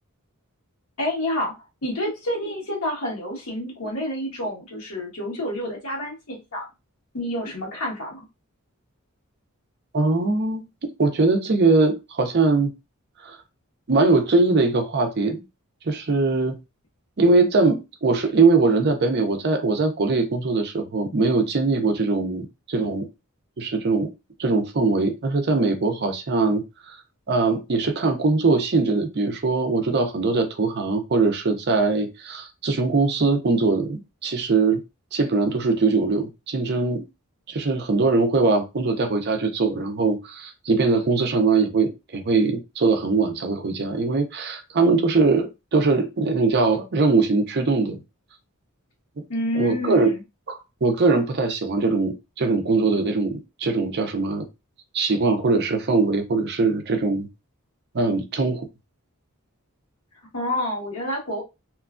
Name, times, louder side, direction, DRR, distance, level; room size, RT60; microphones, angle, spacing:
voice 1, 1.0-6.7 7.1-8.2 49.3-50.2 60.3-61.4, left 1 dB, 80° left, 1.4 m, -29 dB
voice 2, 9.9-12.7 13.2-13.4 13.9-15.4 15.8-16.6 17.2-23.1 23.6-24.1 24.4-27.0 27.3-34.8 35.1-37.0 37.5-48.0 49.5-50.1 50.5-54.5 54.9-57.3 57.9-58.7, right 3 dB, 50° right, 0.5 m, -21 dB
3.0 x 2.3 x 2.4 m
head